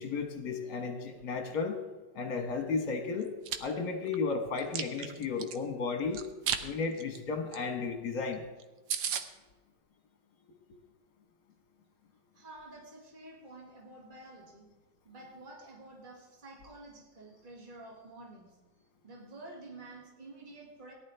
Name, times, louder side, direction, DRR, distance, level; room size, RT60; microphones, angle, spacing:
voice 1, 0.0-1.8 2.1-3.3 3.6-6.2 6.6-8.4, left 4 dB, 65° left, 4 dB, 1.8 m, -34 dB
Chewing mastication, 3.2-3.6 4.1-5.6 6.1-6.6 7.0-7.2 7.5-7.6 7.9-8.0 8.3-8.4 8.6-8.7 8.9-9.2, right 8 dB, 85° right, 1.5 m, -33 dB
voice 2, 12.3-14.7 15.0-18.6 19.0-20.9, right 2 dB, 25° right, -1 dB, 2.1 m, -50 dB
17.5 x 11.0 x 3.4 m, 1.2 s
omnidirectional pair, 2.0 m